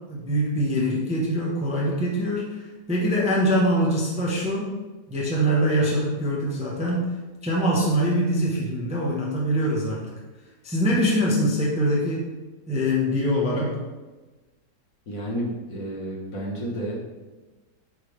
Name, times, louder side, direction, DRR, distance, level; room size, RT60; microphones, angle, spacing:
voice 1, 0.1-4.7 5.1-7.1 7.4-10.0 10.6-12.3 12.7-13.8, equal, 5° right, -4 dB, 0.8 m, -23 dB
voice 2, 15.1-17.0, equal, 55° left, -3 dB, 1.6 m, -31 dB
8.7 x 3.6 x 3.3 m, 1.2 s
omnidirectional pair, 1.9 m